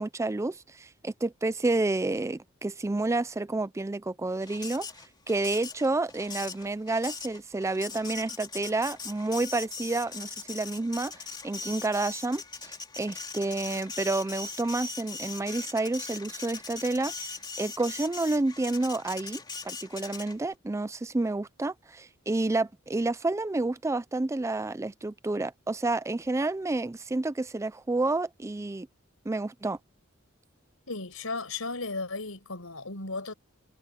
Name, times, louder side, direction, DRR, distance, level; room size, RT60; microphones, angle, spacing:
voice 1, 0.0-4.9 5.3-11.1 11.4-17.1 17.6-28.9 29.3-29.8, right 2 dB, 15° right, 0.4 m, -29 dB
Printer, 4.4-20.5, left 4 dB, 20° left, 2.9 m, -40 dB
voice 2, 30.9-33.3, left 3 dB, 75° left, 5.4 m, -35 dB
head